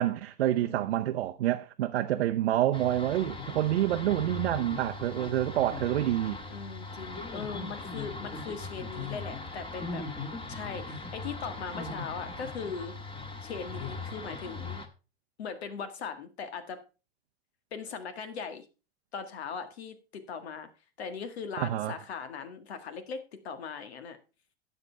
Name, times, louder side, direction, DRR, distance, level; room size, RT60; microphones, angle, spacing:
voice 1, 0.0-6.4 21.6-21.9, right 13 dB, 85° right, 0.7 m, -28 dB
voice 2, 0.6-1.1 6.5-10.0 10.5-12.9 13.4-14.8 15.4-16.8 17.7-18.6 19.1-20.7 21.0-23.2 23.4-24.2, left 6 dB, 80° left, 1.8 m, -39 dB
sound 1, 2.7-14.9, left 3 dB, 15° left, 1.5 m, -39 dB
12.0 x 8.0 x 3.4 m
hypercardioid pair, 110°, 31 cm